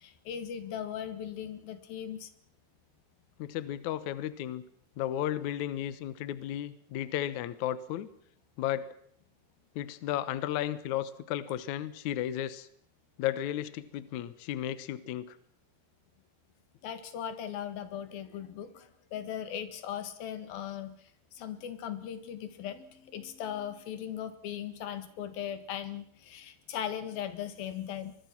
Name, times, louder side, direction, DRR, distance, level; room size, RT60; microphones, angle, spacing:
voice 1, 0.0-2.3 16.8-18.9 19.1-21.0 21.4-28.2, left 9 dB, 85° left, 10 dB, 3.6 m, -38 dB
voice 2, 3.4-4.6 5.0-8.1 8.6-8.9 9.8-12.7 13.2-15.4, left 12 dB, 65° left, 14 dB, 2.2 m, -34 dB
24.5 x 21.5 x 6.0 m, 0.65 s
omnidirectional pair, 4.1 m